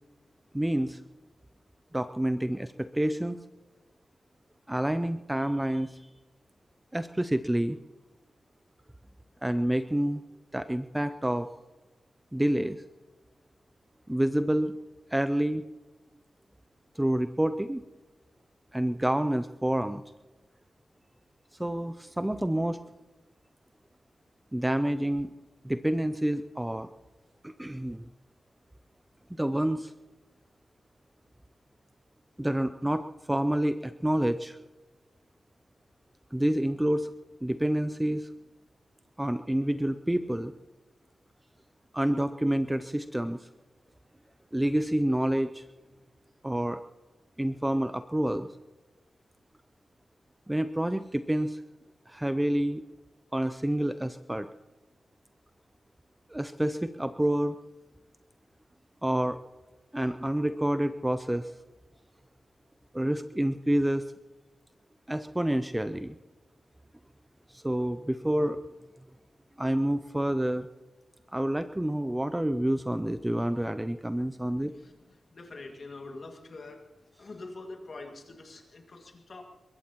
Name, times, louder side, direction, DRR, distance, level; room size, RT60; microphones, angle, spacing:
voice 1, 0.5-1.0 1.9-3.4 4.7-6.1 6.9-7.8 9.4-10.2 10.5-11.5 12.3-12.8 14.1-14.7 15.1-15.6 17.0-17.8 18.7-20.0 21.6-22.8 24.5-25.3 25.6-26.9 27.4-28.1 29.4-29.9 32.4-34.6 36.3-37.1 37.4-38.3 39.2-40.5 41.9-43.5 44.5-45.7 46.4-46.8 47.4-48.5 50.5-51.6 52.1-52.8 53.3-54.5 56.3-57.6 59.0-59.4 59.9-61.5 62.9-64.0 65.1-66.2 67.5-68.6 69.6-70.7 71.3-74.7, right 1 dB, 5° right, 10 dB, 0.4 m, -28 dB
voice 2, 75.3-76.9 77.2-79.4, left 3 dB, 40° left, 3 dB, 2.1 m, -44 dB
22.5 x 21.0 x 3.0 m, 1.2 s
wide cardioid pair, 160°, 0 cm